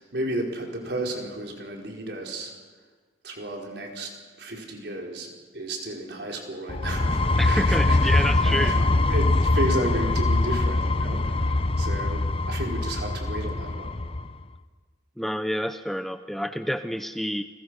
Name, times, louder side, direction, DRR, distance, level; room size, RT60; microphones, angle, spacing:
voice 1, 0.0-2.5 3.2-4.1 4.4-14.0, right 1 dB, 60° right, 1 dB, 4.8 m, -33 dB
sound 1, 6.7-14.3, left 2 dB, 30° left, 0.9 m, -23 dB
voice 2, 7.4-8.7 15.2-17.4, equal, ahead, 9 dB, 0.7 m, -28 dB
29.5 x 21.0 x 6.4 m, 1.5 s
head